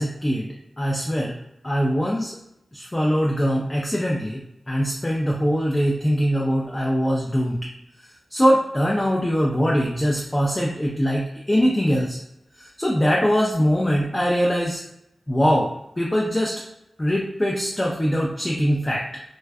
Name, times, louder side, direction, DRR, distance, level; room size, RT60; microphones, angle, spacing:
voice 1, 0.0-1.4 1.6-2.3 2.7-7.6 8.3-12.2 12.6-14.8 15.3-15.7 16.0-16.5 17.0-19.0, equal, 15° left, -3 dB, 0.4 m, -22 dB
2.5 x 2.1 x 2.3 m, 0.82 s
wide cardioid pair, 115°, 0 cm